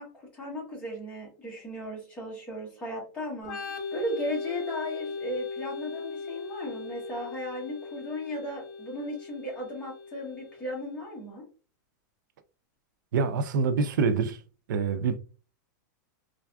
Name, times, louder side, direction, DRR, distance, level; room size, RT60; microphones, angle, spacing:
voice 1, 0.0-3.6 3.9-11.4, left 1 dB, 10° left, 1.0 m, -36 dB
Organ, 3.4-10.9, left 4 dB, 60° left, 1.0 m, -38 dB
voice 2, 13.1-14.4 14.7-15.2, right 5 dB, 80° right, 0.4 m, -26 dB
3.3 x 2.5 x 2.2 m
supercardioid pair, 175°, 10 cm